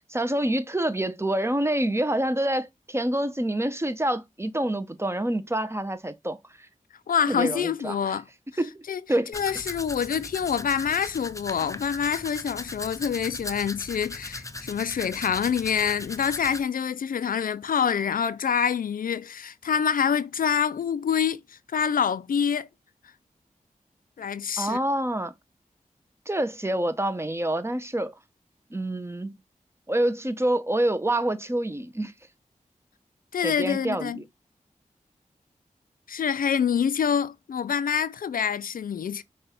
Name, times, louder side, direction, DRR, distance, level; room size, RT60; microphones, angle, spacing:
voice 1, 0.1-6.4 7.3-8.2 8.6-8.8 9.1-9.3 24.6-25.3 26.3-28.1 28.7-29.3 29.9-32.1 33.4-34.2, right 1 dB, 20° right, 0.7 m, -27 dB
voice 2, 7.1-8.2 8.9-9.0 9.3-22.7 24.2-24.8 33.3-34.2 36.1-39.2, left 7 dB, 80° left, 0.4 m, -26 dB
Domestic sounds home sounds, 9.3-16.6, left 2 dB, 20° left, 0.6 m, -38 dB
5.3 x 2.4 x 4.2 m
cardioid pair, 40°, 14 cm